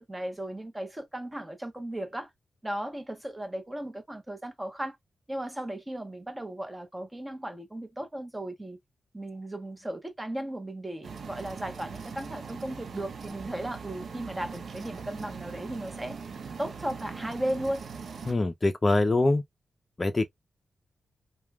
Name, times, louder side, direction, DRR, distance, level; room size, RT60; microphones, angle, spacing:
voice 1, 0.0-2.3 2.6-5.0 5.3-8.8 9.1-16.2 16.6-17.9, right 1 dB, 15° right, 0.9 m, -36 dB
sound 1, 11.0-18.3, right 5 dB, 75° right, 0.6 m, -41 dB
voice 2, 18.2-19.4 20.0-20.3, left 2 dB, 35° left, 0.5 m, -24 dB
3.1 x 2.2 x 2.2 m
cardioid pair, 65°, 0 cm